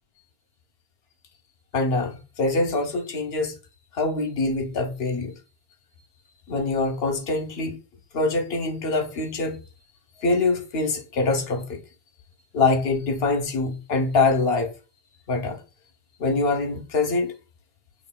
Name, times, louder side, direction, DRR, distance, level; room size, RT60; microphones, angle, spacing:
voice 1, 1.7-3.5 3.9-5.3 6.5-7.8 8.1-9.6 10.2-11.8 12.5-14.7 15.3-15.6 16.2-17.3, left 3 dB, 75° left, 1.0 m, -24 dB
5.3 x 2.5 x 2.2 m
omnidirectional pair, 1.0 m